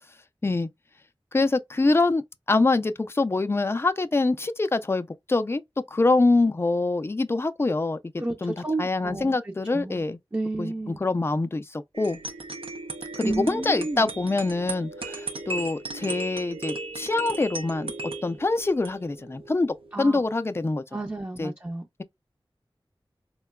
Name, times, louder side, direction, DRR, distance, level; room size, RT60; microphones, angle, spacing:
voice 1, 1.3-2.2 2.5-5.6 5.9-8.0 8.4-8.5 8.8-10.2 10.6-10.7 11.0-12.2 13.2-17.9 18.2-20.8 21.4-21.5, left 3 dB, 25° left, 0.4 m, -24 dB
voice 2, 8.2-10.0 10.3-11.0 13.2-14.1 19.9-20.2 20.9-21.9, right 2 dB, 25° right, 0.5 m, -31 dB
sound 1, 11.9-20.2, right 2 dB, 85° right, 0.6 m, -37 dB
3.6 x 2.2 x 2.2 m
wide cardioid pair, 60°, 9 cm